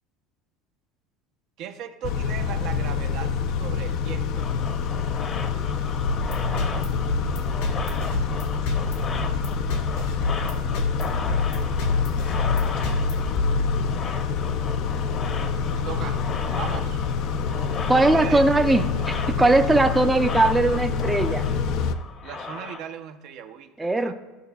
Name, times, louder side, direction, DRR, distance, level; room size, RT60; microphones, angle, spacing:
voice 1, 1.6-4.5 7.8-8.1 15.8-16.3 16.5-17.0 18.1-18.4 22.2-24.1, right 9 dB, 60° right, 6 dB, 0.6 m, -37 dB
Car / Idling / Accelerating revving vroom, 2.0-21.9, left 6 dB, 60° left, 0.5 m, -27 dB
sound 1, 4.3-22.8, left 4 dB, 35° left, 0.9 m, -37 dB
sound 2, 6.1-14.2, left 2 dB, 85° left, 1.4 m, -28 dB
voice 2, 17.9-21.5 23.8-24.1, right 2 dB, 10° right, 6 dB, 0.5 m, -20 dB
13.5 x 5.4 x 2.3 m, 1.1 s
supercardioid pair, 100°, 0 cm